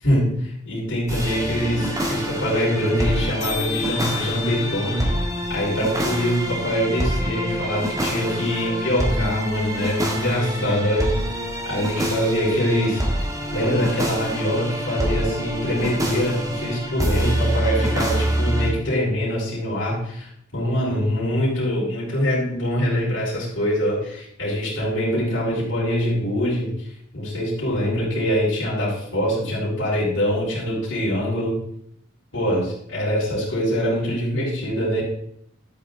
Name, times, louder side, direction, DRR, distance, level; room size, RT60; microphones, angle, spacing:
voice 1, 0.0-5.0 5.5-11.1 11.6-13.0 13.5-26.9 27.1-31.5 32.3-35.0, equal, 65° left, -9 dB, 3.8 m, -24 dB
sound 1, 1.1-18.7, equal, 15° right, 1.6 m, -26 dB
sound 2, 1.6-1.7 1.9-2.1 2.4-2.5 2.6-2.9 3.1-3.2 3.4-7.4, left 11 dB, 40° left, 2.2 m, -35 dB
12.0 x 8.5 x 3.8 m, 0.71 s
head